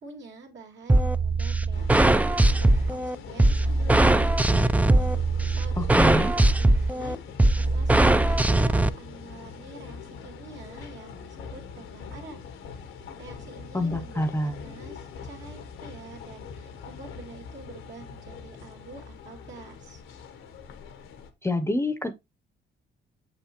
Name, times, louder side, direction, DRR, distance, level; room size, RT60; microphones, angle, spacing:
voice 1, 0.0-2.2 2.6-3.7 4.2-4.7 5.5-7.2 7.5-12.5 13.2-20.0, right 3 dB, 65° right, 2.2 m, -47 dB
sound 1, 0.9-8.9, right 2 dB, 5° right, 0.4 m, -21 dB
sound 2, 1.7-21.3, left 6 dB, 80° left, 1.0 m, -42 dB
voice 2, 5.8-6.3 13.7-14.5 21.4-22.1, left 1 dB, 15° left, 0.7 m, -26 dB
6.9 x 5.7 x 2.9 m
cardioid pair, 90°, 20 cm